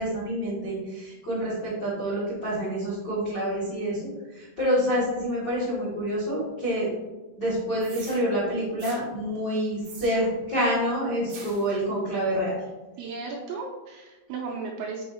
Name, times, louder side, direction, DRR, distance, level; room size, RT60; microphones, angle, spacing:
voice 1, 0.0-6.9 7.4-12.6, equal, 80° left, -9 dB, 0.9 m, -27 dB
sound 1, 7.8-8.2 8.8-9.0 9.8-10.4 11.3-11.7, right 4 dB, 65° right, 1.9 m, -44 dB
voice 2, 13.0-15.0, right 4 dB, 85° right, -1 dB, 2.7 m, -35 dB
6.4 x 6.2 x 2.8 m, 1.2 s
omnidirectional pair, 6.0 m